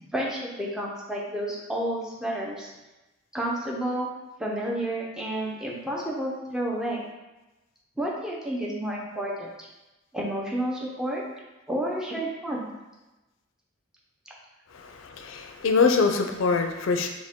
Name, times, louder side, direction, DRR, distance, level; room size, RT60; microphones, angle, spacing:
voice 1, 0.1-2.7 3.3-4.1 4.4-7.0 8.0-9.7 10.1-11.2 11.7-12.7, right 1 dB, 5° right, -3 dB, 0.5 m, -30 dB
voice 2, 14.7-17.1, left 4 dB, 65° left, 5 dB, 0.4 m, -24 dB
4.9 x 2.2 x 3.5 m, 1.1 s
head